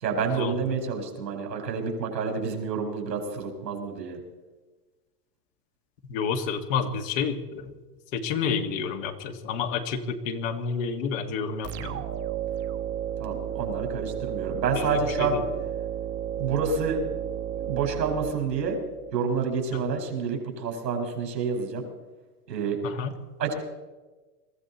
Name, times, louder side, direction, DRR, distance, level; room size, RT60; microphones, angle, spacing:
voice 1, 0.0-4.2 13.2-15.4 16.4-17.0 17.6-18.8 19.1-21.9 22.5-22.8 23.4-23.5, right 5 dB, 90° right, 3 dB, 4.9 m, -28 dB
voice 2, 6.1-7.7 8.1-12.0 14.7-15.4 19.7-19.8 22.8-23.1, left 6 dB, 50° left, 6 dB, 1.9 m, -30 dB
sound 1, 11.6-19.1, right 10 dB, 30° right, 1.2 m, -33 dB
22.5 x 14.0 x 4.2 m, 1.2 s
hypercardioid pair, 125°, 48 cm